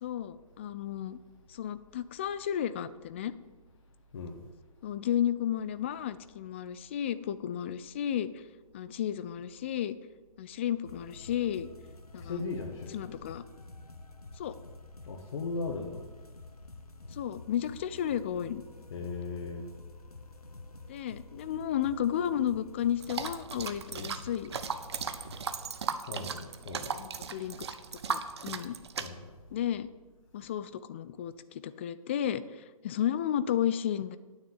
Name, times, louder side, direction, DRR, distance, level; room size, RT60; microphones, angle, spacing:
voice 1, 0.0-1.2 1.5-3.3 4.8-8.4 8.7-10.0 10.4-11.7 12.1-12.4 12.9-13.4 14.4-14.5 17.1-18.6 20.9-24.5 26.9-27.6 28.1-28.8 29.5-29.9 30.3-34.2, left 10 dB, 20° left, 14 dB, 0.3 m, -33 dB
voice 2, 4.1-4.5 12.2-13.2 15.1-16.0 18.9-19.6 26.1-27.0 29.0-29.2, left 4 dB, 40° left, 1 dB, 1.5 m, -37 dB
sound 1, 10.8-25.7, left 2 dB, 85° left, 0.9 m, -49 dB
sound 2, 23.0-29.1, right 6 dB, 45° right, 0.9 m, -37 dB
9.6 x 9.3 x 8.0 m, 1.3 s
figure-of-eight pair, 130°, 19 cm